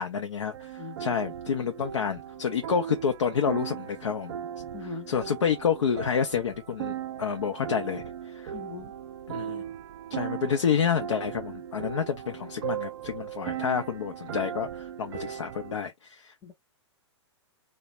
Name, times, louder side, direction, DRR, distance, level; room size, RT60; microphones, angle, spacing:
voice 1, 0.0-4.3 4.8-8.5 9.3-9.6 10.1-16.3, left 7 dB, 85° left, 0.5 m, -29 dB
sound 1, 0.5-15.8, right 10 dB, 60° right, 0.4 m, -38 dB
voice 2, 4.7-5.1 8.5-8.9 16.4-16.5, left 5 dB, 15° left, 0.6 m, -40 dB
2.4 x 2.1 x 2.9 m
hypercardioid pair, 120°, 15 cm